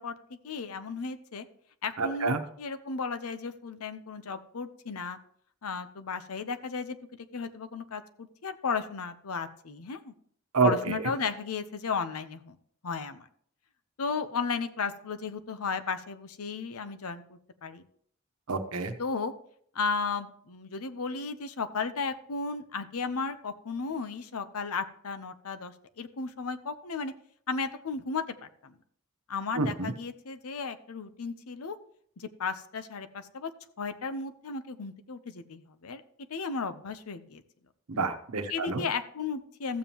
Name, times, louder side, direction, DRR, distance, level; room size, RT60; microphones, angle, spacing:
voice 1, 0.0-1.4 1.8-5.2 5.6-7.0 7.3-10.1 10.6-12.6 12.8-13.2 14.0-17.8 19.0-19.3 19.7-27.1 27.5-28.7 29.3-31.8 32.2-33.5 33.8-36.0 36.3-37.4 38.5-39.8, left 5 dB, 75° left, 10 dB, 0.7 m, -34 dB
voice 2, 2.0-2.4 10.5-11.0 18.5-18.9 29.6-29.9 37.9-38.8, right 4 dB, 75° right, 7 dB, 1.0 m, -28 dB
14.5 x 7.2 x 2.9 m, 0.63 s
head